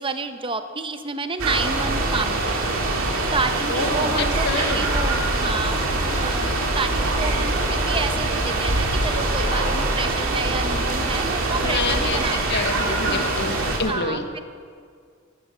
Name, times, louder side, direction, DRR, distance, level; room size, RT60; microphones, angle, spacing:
voice 1, 0.0-2.9 3.3-12.5 13.1-13.3 13.9-14.4, right 3 dB, 25° right, 8 dB, 0.7 m, -30 dB
sound 1, 1.4-13.8, right 2 dB, 90° right, 2.3 m, -23 dB
Water, 3.5-13.9, right 2 dB, 45° right, 4.1 m, -41 dB
voice 2, 3.7-4.9 11.6-14.3, left 3 dB, 55° left, 7 dB, 1.1 m, -28 dB
16.0 x 13.0 x 6.2 m, 2.1 s
head